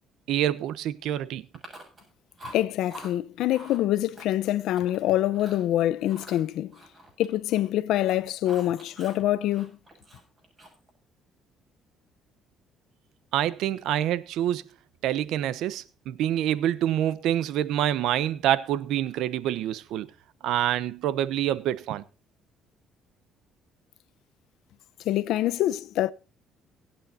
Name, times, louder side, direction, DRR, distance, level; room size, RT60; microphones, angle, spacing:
voice 1, 0.3-1.5 13.3-14.6 15.0-20.1 20.4-22.0, right 11 dB, 75° right, 0.9 m, -26 dB
Chewing mastication, 1.5-2.1 2.4-3.1 3.5-3.8 4.2-5.0 5.3-5.7 6.1-7.7 8.0-9.2 9.5-10.9, equal, 25° right, 7.2 m, -46 dB
voice 2, 2.5-6.7 7.2-9.8 25.0-26.1, left 13 dB, 75° left, 0.8 m, -25 dB
23.5 x 8.8 x 2.8 m
cardioid pair, 120°, 0 cm